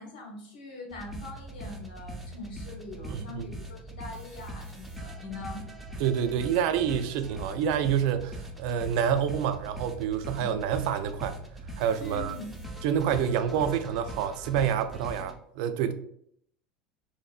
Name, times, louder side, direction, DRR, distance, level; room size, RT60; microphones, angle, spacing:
voice 1, 0.0-5.6 10.3-10.5 12.0-12.6, left 2 dB, 75° left, 1.0 m, -42 dB
sound 1, 0.9-15.4, right 1 dB, ahead, 0.6 m, -41 dB
voice 2, 3.1-3.5 6.0-11.4 11.8-12.4 12.8-15.9, right 8 dB, 65° right, 0.3 m, -28 dB
4.1 x 2.0 x 2.4 m
hypercardioid pair, 80°, 5 cm